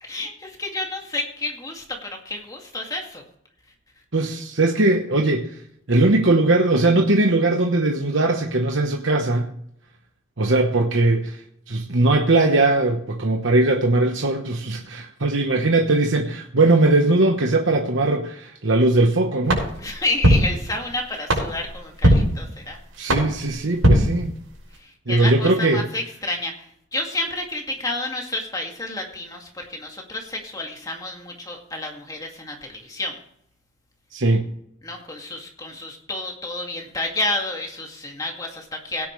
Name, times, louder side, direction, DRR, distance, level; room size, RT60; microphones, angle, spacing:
voice 1, 0.0-3.2 19.8-22.8 24.8-26.7 26.9-33.2 34.8-39.1, left 2 dB, 15° left, 1 dB, 2.1 m, -30 dB
voice 2, 4.1-5.5 5.9-9.5 10.4-11.4 11.7-19.6 23.0-24.3 25.1-25.9 34.1-34.5, right 2 dB, 65° right, 3 dB, 1.1 m, -19 dB
sound 1, 19.5-24.8, equal, 85° right, 5.9 m, -22 dB
17.0 x 10.0 x 3.2 m, 0.71 s
head